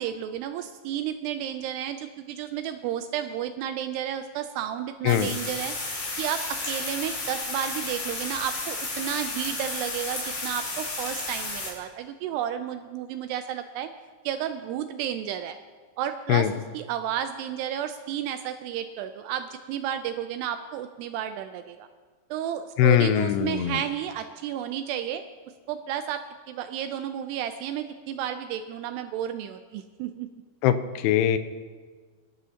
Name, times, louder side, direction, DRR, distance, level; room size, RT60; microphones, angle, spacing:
voice 1, 0.0-5.7 6.2-13.9 14.2-15.6 16.0-21.9 22.3-25.2 25.7-30.3, right 10 dB, 85° right, 8 dB, 2.4 m, -32 dB
sound 1, 5.1-11.7, left 2 dB, 65° left, 5.8 m, -33 dB
voice 2, 22.8-23.8 30.6-31.4, left 11 dB, 85° left, 11 dB, 2.4 m, -21 dB
23.0 x 12.0 x 2.8 m, 1.5 s
omnidirectional pair, 5.2 m